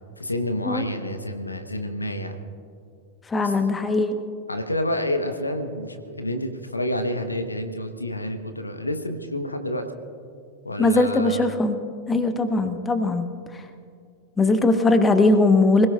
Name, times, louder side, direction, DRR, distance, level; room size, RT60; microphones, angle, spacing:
voice 1, 0.2-2.4 3.4-3.5 4.5-9.9 10.6-11.5, left 1 dB, 85° left, 7 dB, 1.0 m, -29 dB
voice 2, 3.3-4.2 10.8-11.8 12.1-13.3 13.5-13.6 14.4-15.9, left 2 dB, 15° left, 8 dB, 1.1 m, -20 dB
25.5 x 17.5 x 2.4 m, 2.3 s
figure-of-eight pair, 90°, 0 cm